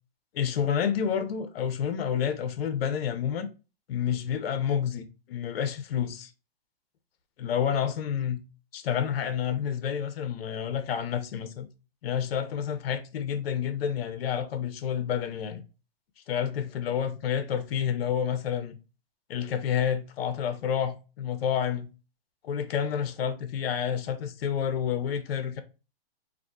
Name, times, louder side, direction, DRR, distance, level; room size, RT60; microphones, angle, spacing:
voice 1, 0.3-3.5 3.9-6.3 7.4-8.4 8.7-11.7 12.0-15.6 16.3-18.8 19.3-21.9 22.4-25.6, left 8 dB, 70° left, 0.5 m, -29 dB
2.6 x 2.4 x 2.2 m
hypercardioid pair, 140°, 31 cm